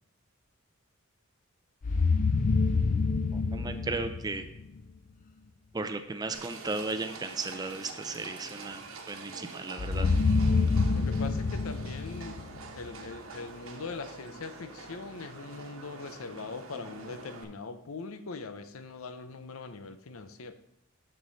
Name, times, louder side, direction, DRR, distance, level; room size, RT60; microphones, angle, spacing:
sound 1, 1.8-4.8 9.8-13.0, left 4 dB, 40° left, 0.4 m, -27 dB
voice 1, 3.3-4.5 5.7-10.1, right 3 dB, 20° right, 0.5 m, -35 dB
Livestock farm animals working animals, 6.3-17.4, right 3 dB, 80° right, 1.2 m, -46 dB
voice 2, 10.9-12.4 12.7-20.5, left 4 dB, 85° left, 0.7 m, -41 dB
7.3 x 6.8 x 4.0 m
head